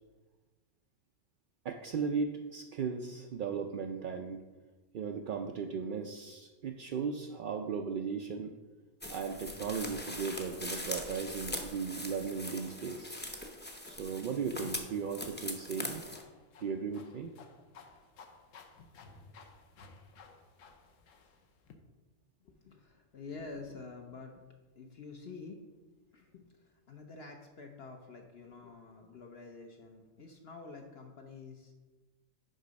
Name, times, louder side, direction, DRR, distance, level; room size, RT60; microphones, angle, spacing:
voice 1, 1.6-4.4 4.9-8.5 9.1-13.3 13.9-16.0 16.6-17.3, right 5 dB, 70° right, 4 dB, 0.5 m, -36 dB
sound 1, 9.0-16.2, left 1 dB, 10° left, 0.5 m, -41 dB
sound 2, 14.5-21.7, left 4 dB, 75° left, 1.1 m, -56 dB
voice 2, 22.4-24.5 24.8-25.7 26.1-31.7, left 4 dB, 55° left, 3 dB, 0.9 m, -48 dB
6.4 x 5.4 x 5.1 m, 1.2 s
omnidirectional pair, 1.4 m